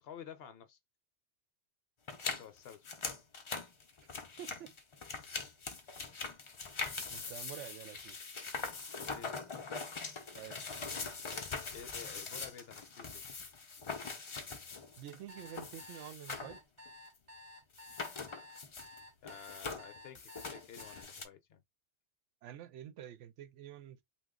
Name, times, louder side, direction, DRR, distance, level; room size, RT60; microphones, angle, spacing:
voice 1, 0.0-0.8 2.4-2.9 9.1-9.3 11.7-13.3 19.2-21.6, left 8 dB, 65° left, 0.8 m, -51 dB
sound 1, 2.1-16.6 16.9-17.0 17.7-19.0 19.2-21.3, left 4 dB, 45° left, 0.3 m, -42 dB
voice 2, 4.4-4.7 7.1-8.2 10.1-10.6 15.0-16.6 22.4-24.0, right 11 dB, 85° right, 0.9 m, -48 dB
sound 2, 15.3-21.0, left 2 dB, 40° right, 0.9 m, -53 dB
2.9 x 2.3 x 3.6 m
omnidirectional pair, 1.2 m